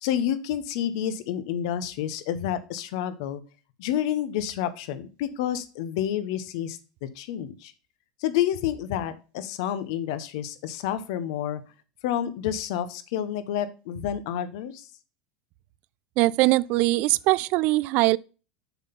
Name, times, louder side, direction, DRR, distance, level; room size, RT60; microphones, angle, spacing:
voice 1, 0.0-3.4 3.8-7.7 8.2-11.6 12.0-14.9, left 10 dB, 70° left, 0.9 m, -29 dB
voice 2, 16.2-18.2, right 19 dB, 55° right, 0.3 m, -21 dB
7.0 x 3.9 x 5.8 m
supercardioid pair, 120°, 3 cm